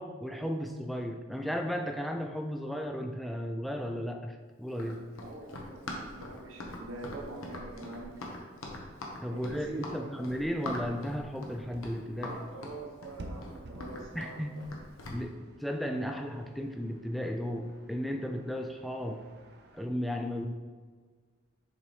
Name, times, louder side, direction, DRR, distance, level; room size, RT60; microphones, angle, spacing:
voice 1, 0.0-5.0 9.2-12.4 14.1-14.6 15.1-19.3 19.7-20.5, equal, ahead, 3 dB, 0.3 m, -35 dB
Run, 4.7-15.2, left 1 dB, 85° left, 1.0 m, -42 dB
voice 2, 5.2-8.2 9.3-10.1 12.1-14.6, right 2 dB, 80° right, -1 dB, 1.1 m, -44 dB
sound 1, 7.6-19.9, right 1 dB, 50° right, 0.6 m, -53 dB
7.1 x 4.1 x 3.3 m, 1.5 s
head